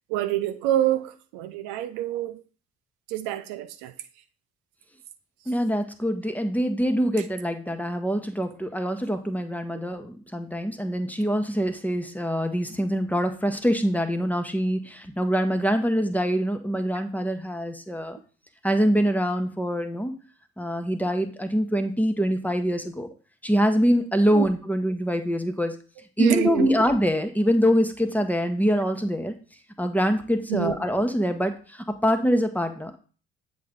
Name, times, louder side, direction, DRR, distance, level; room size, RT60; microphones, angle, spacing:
voice 1, 0.1-2.4 3.1-3.9 24.3-24.5 26.2-26.7 30.5-30.7, right 13 dB, 75° right, 0.6 m, -26 dB
voice 2, 5.5-18.2 18.6-20.1 20.6-23.1 23.4-25.7 26.2-29.3 29.8-33.0, equal, 5° left, 1.0 m, -24 dB
7.6 x 3.9 x 3.7 m
hypercardioid pair, 50°, 32 cm